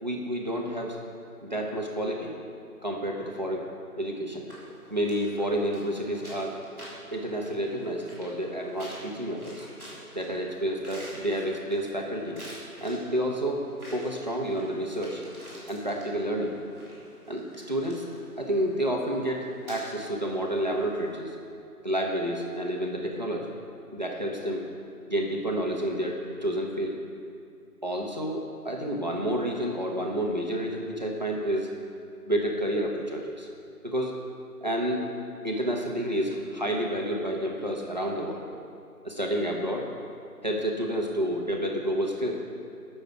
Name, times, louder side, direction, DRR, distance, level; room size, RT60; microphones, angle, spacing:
voice 1, 0.0-1.0 1.4-2.3 2.8-3.7 4.0-4.5 4.9-6.5 7.1-9.7 10.1-12.4 12.8-13.7 13.9-15.2 15.7-16.6 17.3-18.0 18.4-21.3 21.8-23.5 23.9-24.7 25.1-26.9 27.8-31.7 32.2-33.5 33.8-34.2 34.6-35.1 35.4-38.5 39.0-39.9 40.4-42.3, equal, 30° right, 0 dB, 1.0 m, -29 dB
sound 1, 4.5-21.2, right 1 dB, ahead, 2.0 m, -48 dB
14.5 x 6.6 x 4.7 m, 2.6 s
figure-of-eight pair, 165°, 46 cm